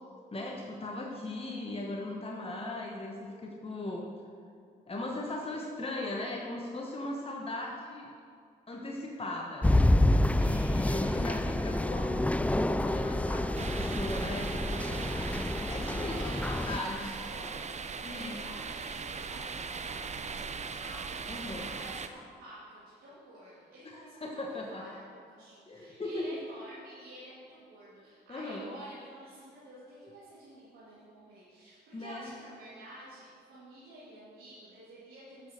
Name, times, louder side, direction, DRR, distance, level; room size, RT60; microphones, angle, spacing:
voice 1, 0.3-4.1 4.9-8.1 8.7-9.7 10.4-14.8 15.7-17.2 18.0-18.3 21.3-21.7 23.8-24.8 25.7-26.4 28.3-28.7 31.9-32.3, left 2 dB, 30° left, 0 dB, 1.3 m, -38 dB
sound 1, 9.6-16.8, left 1 dB, 5° left, 0.4 m, -28 dB
voice 2, 10.4-11.7 14.8-35.5, right 1 dB, 80° right, -10 dB, 2.4 m, -50 dB
sound 2, 13.5-22.1, right 5 dB, 35° right, 0.6 m, -39 dB
9.4 x 6.5 x 6.5 m, 2.2 s
supercardioid pair, 55°, 21 cm